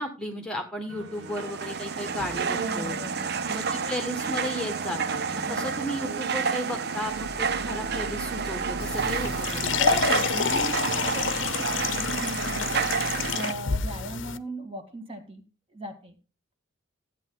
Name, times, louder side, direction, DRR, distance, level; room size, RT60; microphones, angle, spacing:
voice 1, 0.0-3.0 3.5-10.0, equal, 5° left, 3 dB, 1.4 m, -34 dB
sound 1, 0.9-13.4, equal, 80° right, 2.8 m, -41 dB
sound 2, 1.1-13.5, right 6 dB, 50° right, 0.7 m, -30 dB
voice 2, 2.5-3.4 5.5-5.8 9.7-12.9 13.3-15.4 15.7-16.1, right 1 dB, 25° right, 4 dB, 2.0 m, -37 dB
sound 3, 8.8-14.4, left 6 dB, 65° left, 0.8 m, -28 dB
14.5 x 9.1 x 3.9 m, 0.33 s
head